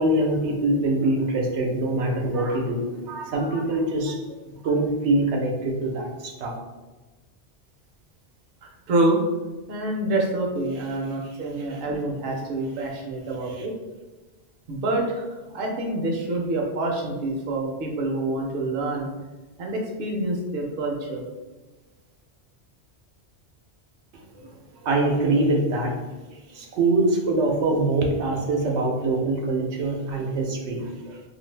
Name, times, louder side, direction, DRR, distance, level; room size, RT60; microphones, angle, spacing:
voice 1, 0.0-6.5 11.0-11.8 13.4-13.7 24.1-26.1 26.5-31.3, right 2 dB, 85° right, 0 dB, 0.9 m, -24 dB
voice 2, 8.9-9.2 9.7-13.7 14.7-15.0 15.5-19.1 19.6-21.2, right 2 dB, 60° right, 0 dB, 0.7 m, -26 dB
2.5 x 2.5 x 3.2 m, 1.2 s
omnidirectional pair, 1.1 m